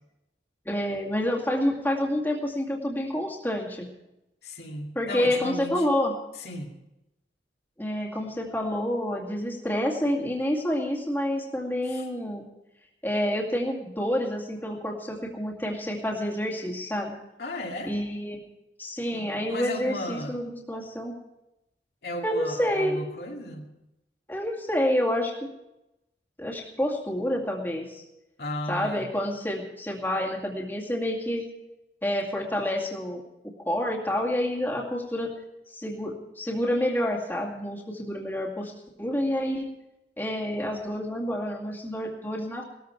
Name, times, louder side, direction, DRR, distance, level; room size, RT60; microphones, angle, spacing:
voice 1, 0.6-3.9 4.9-6.1 7.8-12.4 13.0-17.1 17.9-18.4 18.8-21.1 22.2-23.0 24.3-25.3 26.4-28.0 28.7-31.5 32.0-33.2 33.6-35.3 35.7-38.7 39.0-39.7 40.2-42.6, left 1 dB, 10° left, -2 dB, 2.3 m, -28 dB
voice 2, 4.4-5.9 6.4-6.7 11.9-12.0 17.4-17.9 19.1-20.4 22.0-23.7 28.4-29.1, left 1 dB, 65° left, 0 dB, 2.5 m, -35 dB
19.5 x 14.0 x 4.6 m, 0.91 s
head